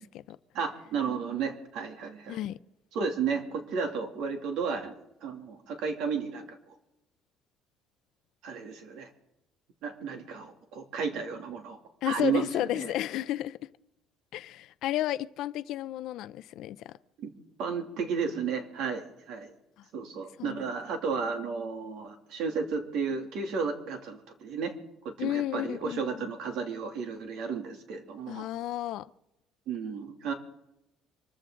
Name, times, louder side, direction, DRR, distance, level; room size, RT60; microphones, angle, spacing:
voice 1, 0.0-0.4 2.3-2.6 12.0-13.6 14.3-16.9 20.4-20.7 25.2-26.3 28.3-29.1, left 13 dB, 65° left, 0.5 m, -32 dB
voice 2, 0.5-2.4 2.9-6.6 8.4-9.1 9.8-11.8 12.0-12.9 17.2-17.3 17.6-19.5 19.9-24.7 25.0-28.5 29.7-30.3, right 5 dB, 70° right, 2.6 m, -33 dB
25.0 x 14.0 x 3.8 m
cardioid pair, 160°, 0 cm